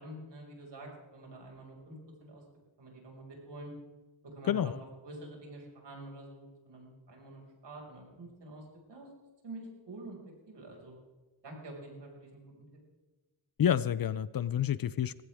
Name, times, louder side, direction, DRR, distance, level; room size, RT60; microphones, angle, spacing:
voice 1, 0.0-2.4 2.8-3.7 4.2-4.7 5.0-9.1 9.4-10.2 10.5-10.9 11.4-12.4, right 2 dB, 65° right, 0 dB, 5.8 m, -47 dB
voice 2, 13.6-15.2, left 9 dB, 50° left, 17 dB, 0.6 m, -29 dB
19.0 x 16.5 x 3.6 m, 1.2 s
cardioid pair, 90°, 46 cm